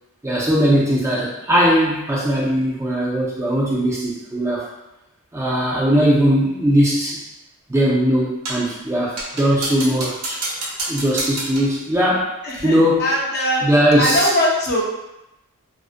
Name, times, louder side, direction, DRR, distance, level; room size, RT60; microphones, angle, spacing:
voice 1, 0.2-4.7 5.3-7.2 7.7-10.4 10.9-12.3 12.6-13.0 13.6-14.2, equal, 15° right, -5 dB, 0.4 m, -19 dB
sound 1, 8.4-8.7 9.2-11.8, right 2 dB, 90° right, 0.6 m, -29 dB
voice 2, 12.4-14.8, equal, 45° left, -3 dB, 0.5 m, -21 dB
2.5 x 2.1 x 2.4 m, 0.93 s
head